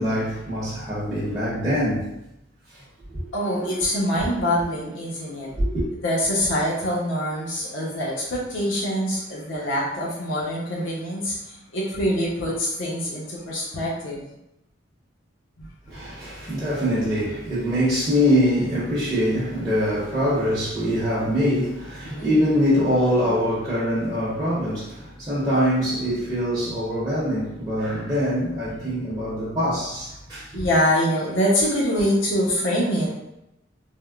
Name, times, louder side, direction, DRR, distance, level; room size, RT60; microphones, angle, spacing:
voice 1, 0.0-2.1 3.1-3.2 5.6-5.8 15.9-30.5, equal, 20° right, 0.7 m, -23 dB
voice 2, 3.3-5.5 6.0-14.2 15.6-15.7 22.0-22.3 30.5-33.2, equal, 85° left, 0.8 m, -24 dB
3.4 x 2.0 x 2.3 m
head